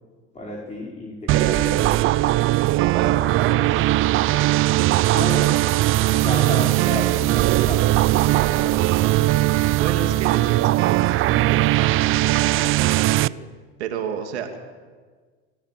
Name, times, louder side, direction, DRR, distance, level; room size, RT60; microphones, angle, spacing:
voice 1, 0.3-2.0 5.1-5.5 6.1-8.2, left 2 dB, 20° left, -2 dB, 5.3 m, -32 dB
sound 1, 1.3-13.3, right 17 dB, 40° right, 0.5 m, -19 dB
voice 2, 2.9-4.8 8.2-11.6 12.0-13.4 13.8-14.6, right 7 dB, 90° right, 4 dB, 2.8 m, -33 dB
26.0 x 16.0 x 7.8 m, 1.5 s
hypercardioid pair, 100°, 32 cm